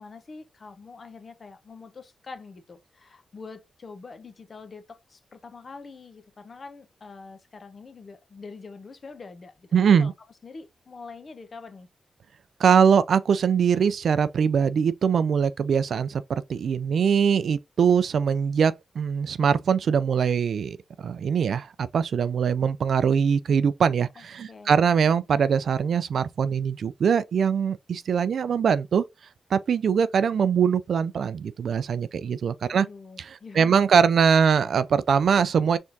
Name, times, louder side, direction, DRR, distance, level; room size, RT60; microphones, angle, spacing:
voice 1, 0.0-10.1 10.4-11.9 24.2-24.9 32.7-33.8 35.6-35.7, left 4 dB, 50° left, 0.9 m, -44 dB
voice 2, 9.7-10.1 12.6-29.0 29.5-32.9 33.2-35.8, right 7 dB, 75° right, 0.3 m, -22 dB
4.4 x 3.6 x 2.6 m
cardioid pair, 65°, 0 cm